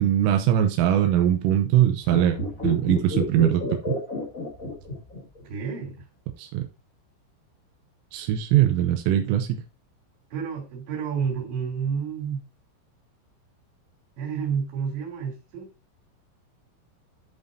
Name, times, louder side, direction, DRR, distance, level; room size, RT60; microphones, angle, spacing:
voice 1, 0.0-3.9 6.4-6.7 8.1-9.6, right 11 dB, 85° right, 3.3 m, -22 dB
sound 1, 2.0-5.4 5.7-5.8, left 2 dB, 25° left, 2.2 m, -30 dB
voice 2, 5.5-6.1 10.3-12.4 14.2-15.7, right 6 dB, 60° right, 5.4 m, -30 dB
13.5 x 5.3 x 2.8 m
omnidirectional pair, 6.0 m